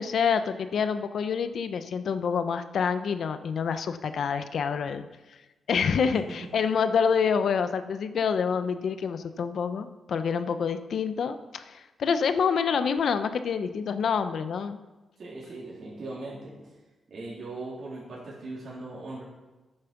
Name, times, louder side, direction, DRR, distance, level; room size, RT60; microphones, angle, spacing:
voice 1, 0.0-5.1 5.7-14.8, left 6 dB, 70° left, 10 dB, 0.8 m, -27 dB
voice 2, 15.2-16.7 17.1-19.2, right 2 dB, 60° right, -7 dB, 3.5 m, -39 dB
11.5 x 8.9 x 6.0 m, 1.1 s
cardioid pair, 105°, 0 cm